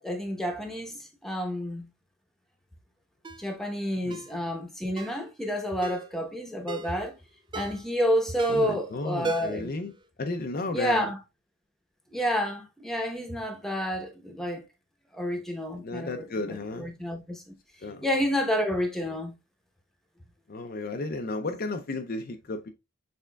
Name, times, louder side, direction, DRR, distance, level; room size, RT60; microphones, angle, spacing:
voice 1, 0.0-1.9 3.4-7.2 7.5-9.7 10.7-11.2 12.1-14.6 15.1-17.5 18.0-19.3, equal, ahead, 0.9 m, -29 dB
Ringtone, 3.2-3.5 4.1-4.3 5.0-5.2 5.8-6.1 6.7-7.0 7.5-7.9 8.4-8.8 9.2-9.7 10.0-10.1, right 2 dB, 20° right, 0.3 m, -35 dB
voice 2, 8.5-9.9 10.2-11.1 15.8-16.9 17.8-18.1 20.5-22.7, left 2 dB, 45° left, 0.5 m, -33 dB
6.6 x 3.5 x 2.3 m
head